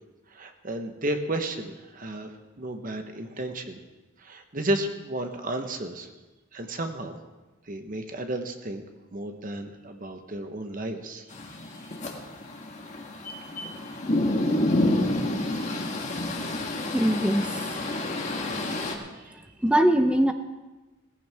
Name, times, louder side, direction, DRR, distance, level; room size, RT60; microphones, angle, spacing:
voice 1, 0.3-3.8 4.2-6.1 6.5-7.2 7.7-8.8 9.1-11.2 19.2-19.3, right 1 dB, 40° right, 6 dB, 1.1 m, -33 dB
sound 1, 11.3-18.9, left 1 dB, 35° left, 1.5 m, -28 dB
voice 2, 16.9-17.8 19.6-20.3, right 1 dB, 5° right, 7 dB, 0.7 m, -22 dB
17.5 x 15.0 x 3.6 m, 1.1 s
head